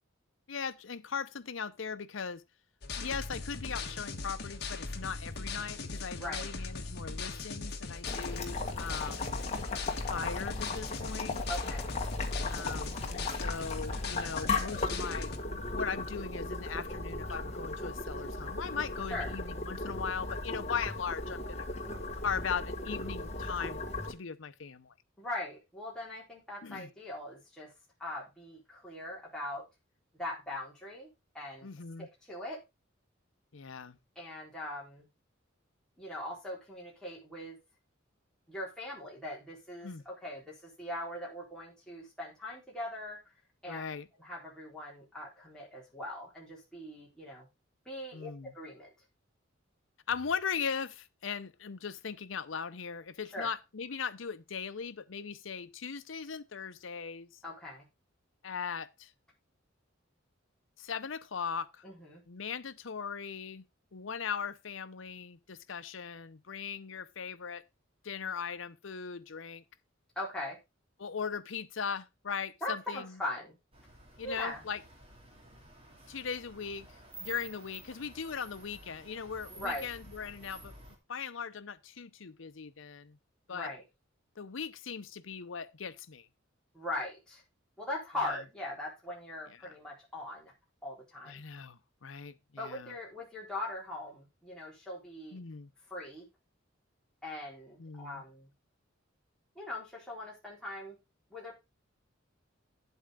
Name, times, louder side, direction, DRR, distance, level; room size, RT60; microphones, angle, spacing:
voice 1, 0.5-2.4 3.0-9.3 10.0-11.4 12.5-21.7 22.2-24.9 26.6-26.9 31.6-32.1 33.5-34.0 39.8-40.0 43.7-44.1 48.1-48.5 50.1-57.3 58.4-59.1 60.8-61.8 62.3-63.6 63.9-67.6 68.0-69.6 71.0-73.2 74.2-74.8 76.1-76.9 77.2-80.7 81.1-83.2 83.5-83.7 84.4-86.3 88.2-88.4 89.6-89.7 91.3-92.9 95.3-95.7 97.8-98.2, left 6 dB, 70° left, 0.7 m, -39 dB
sound 1, 2.8-15.4, left 3 dB, 55° left, 1.4 m, -39 dB
voice 2, 6.2-6.5 11.5-11.9 19.1-19.4 25.2-27.7 28.0-29.6 30.1-31.1 31.3-31.7 32.0-32.6 34.2-35.1 36.0-37.6 38.5-43.2 43.6-43.8 44.2-47.5 47.9-48.9 53.3-53.5 57.4-57.8 61.8-62.2 70.2-70.6 72.6-73.6 74.2-74.6 79.5-79.9 83.5-83.8 86.7-87.4 87.8-90.5 90.8-91.4 92.6-95.4 95.9-96.3 97.2-98.5 99.6-101.0 101.3-101.5, left 1 dB, 5° left, 3.9 m, -40 dB
Boiling, 8.1-24.1, left 3 dB, 35° left, 1.6 m, -37 dB
sound 2, 73.7-81.0, right 2 dB, 30° right, 2.7 m, -52 dB
9.3 x 8.1 x 3.7 m
head